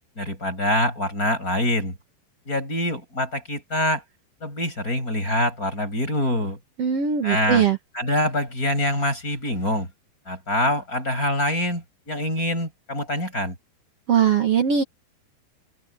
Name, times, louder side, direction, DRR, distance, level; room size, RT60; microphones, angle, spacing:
voice 1, 0.2-1.9 2.5-4.0 4.4-6.6 7.2-7.6 7.9-9.9 10.3-13.5, left 1 dB, 15° left, 8.2 m, -25 dB
voice 2, 6.8-7.8 14.1-14.8, right 8 dB, 85° right, 1.3 m, -20 dB
omnidirectional pair, 5.5 m